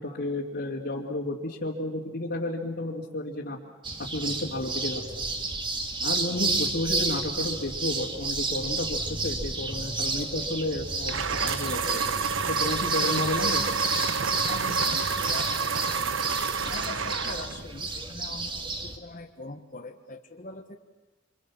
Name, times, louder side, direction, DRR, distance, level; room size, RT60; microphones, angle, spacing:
voice 1, 0.0-3.6 4.0-5.0 6.0-11.8 12.5-13.6, left 1 dB, 60° left, -5 dB, 2.9 m, -31 dB
sound 1, 3.8-19.0, right 3 dB, 25° right, 2.1 m, -31 dB
sound 2, 11.1-17.6, right 5 dB, 90° right, 0.9 m, -29 dB
voice 2, 14.5-16.3 16.6-20.8, left 2 dB, 45° left, 5 dB, 1.4 m, -43 dB
27.5 x 27.0 x 7.4 m, 1.2 s
head